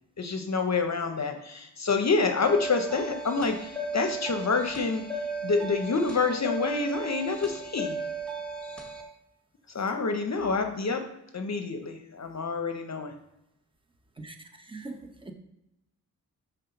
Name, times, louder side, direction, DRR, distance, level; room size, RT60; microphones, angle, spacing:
voice 1, 0.2-5.0 5.4-8.0 9.7-11.0 11.3-13.1, left 4 dB, 50° left, 6 dB, 0.7 m, -27 dB
sound 1, 2.4-9.0, right 2 dB, 5° left, 1.4 m, -35 dB
voice 2, 14.2-15.3, right 2 dB, 15° right, 5 dB, 0.8 m, -42 dB
5.5 x 3.5 x 5.8 m, 0.88 s
wide cardioid pair, 75°, 35 cm